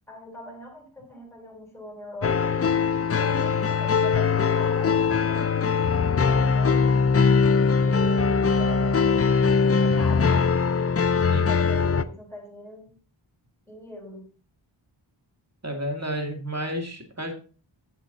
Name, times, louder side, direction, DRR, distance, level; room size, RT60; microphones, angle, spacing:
voice 1, 0.1-2.7 3.2-7.2 7.6-9.5 9.8-10.5 11.4-12.9 13.7-14.3, left 1 dB, 5° left, 1 dB, 4.1 m, -41 dB
sound 1, 2.2-12.0, left 5 dB, 30° left, 0.5 m, -21 dB
voice 2, 15.6-17.3, equal, 30° right, 3 dB, 2.3 m, -31 dB
8.4 x 7.3 x 3.9 m, 0.40 s
wide cardioid pair, 45°, 49 cm